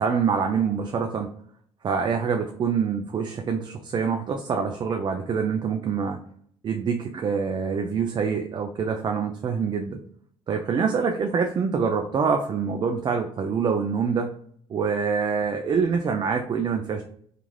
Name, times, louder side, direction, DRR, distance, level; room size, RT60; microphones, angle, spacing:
voice 1, 0.0-1.3 1.8-6.2 6.6-10.0 10.5-14.3 14.7-17.0, right 6 dB, 40° right, 4 dB, 0.4 m, -25 dB
3.1 x 2.5 x 2.2 m, 0.63 s
cardioid pair, 90°, 12 cm